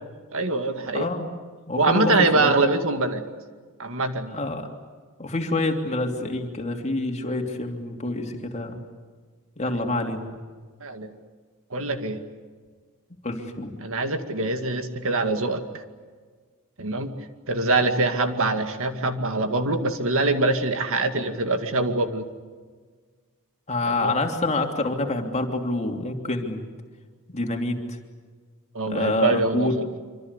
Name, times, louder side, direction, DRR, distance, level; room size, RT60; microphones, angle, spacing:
voice 1, 0.3-1.1 1.8-3.2 3.8-4.4 10.8-11.1 11.7-12.2 13.8-15.6 16.8-17.1 17.5-22.3 24.0-24.1 28.7-29.7, right 2 dB, 65° right, 7 dB, 2.3 m, -24 dB
voice 2, 0.9-1.3 1.7-2.5 4.3-4.7 5.2-8.8 9.6-10.3 13.2-13.7 23.7-26.7 27.3-28.0 28.9-29.8, left 2 dB, 30° left, 3 dB, 3.0 m, -27 dB
26.0 x 26.0 x 8.3 m, 1.5 s
head